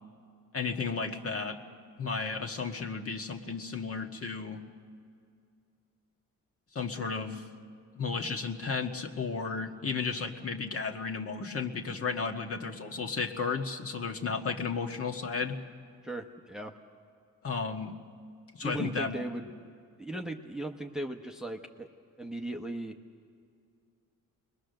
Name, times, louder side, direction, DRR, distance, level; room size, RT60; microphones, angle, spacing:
voice 1, 0.5-1.6 2.0-4.6 6.7-7.5 7.9-15.6 17.4-17.9 18.5-19.2, left 5 dB, 40° left, 3 dB, 1.6 m, -33 dB
voice 2, 16.0-16.8 18.6-19.5 20.0-21.9 22.2-22.9, right 1 dB, ahead, 4 dB, 0.9 m, -37 dB
29.5 x 21.5 x 6.6 m, 2.4 s
cardioid pair, 125°, 34 cm